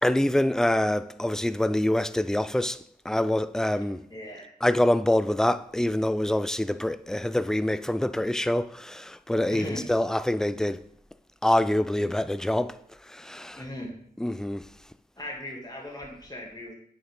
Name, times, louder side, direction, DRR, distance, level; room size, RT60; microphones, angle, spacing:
voice 1, 0.0-2.8 3.1-4.0 4.6-10.8 11.4-12.7 13.1-13.6 14.2-14.7, left 1 dB, 5° left, 0.4 m, -25 dB
voice 2, 4.1-4.5 9.5-9.8 13.5-13.9 15.2-16.7, left 1 dB, 25° left, 2.5 m, -38 dB
8.9 x 5.6 x 3.8 m
cardioid pair, 40°, 17 cm